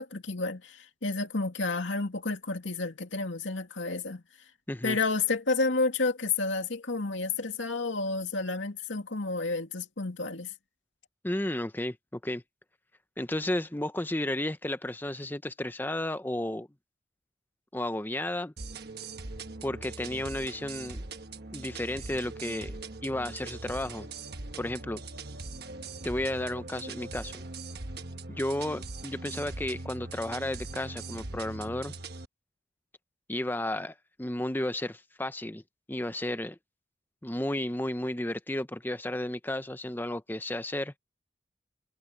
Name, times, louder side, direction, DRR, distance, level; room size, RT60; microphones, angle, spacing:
voice 1, 0.0-4.2 4.8-10.5, left 3 dB, 75° left, 2.4 m, -30 dB
voice 2, 11.2-12.4 13.2-16.7 17.7-18.5 19.6-21.0 21.5-24.1 24.6-25.0 26.0-27.4 28.3-31.9 33.3-35.6 35.9-36.6 37.2-40.9, left 1 dB, 10° left, 0.7 m, -33 dB
sound 1, 18.6-32.3, right 3 dB, 55° right, 1.2 m, -41 dB
head